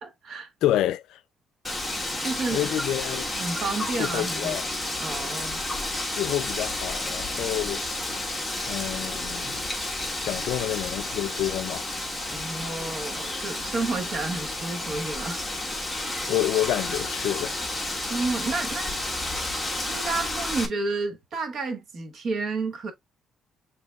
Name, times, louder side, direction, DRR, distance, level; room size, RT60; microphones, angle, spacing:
voice 1, 0.0-0.5 2.2-2.7 3.4-4.6 5.0-5.6 12.3-15.4 18.1-19.0 19.8-22.9, right 3 dB, 50° right, 1.4 m, -31 dB
voice 2, 0.6-1.2 2.5-3.2 3.7-4.6 6.2-7.8 8.7-9.6 10.2-11.9 16.3-17.6, left 13 dB, 85° left, 0.4 m, -28 dB
Wind, 1.6-20.7, left 2 dB, 10° left, 1.3 m, -31 dB
6.8 x 3.3 x 2.3 m
cardioid pair, 130°, 0 cm